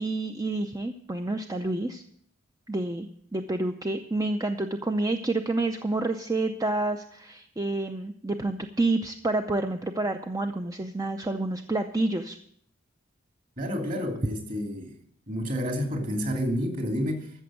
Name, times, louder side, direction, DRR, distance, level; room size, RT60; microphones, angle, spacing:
voice 1, 0.0-2.0 2.7-12.4, right 2 dB, 15° right, 6 dB, 0.6 m, -29 dB
voice 2, 13.6-14.9 15.3-17.3, equal, 45° right, 2 dB, 2.8 m, -29 dB
13.5 x 7.0 x 7.7 m, 0.66 s
head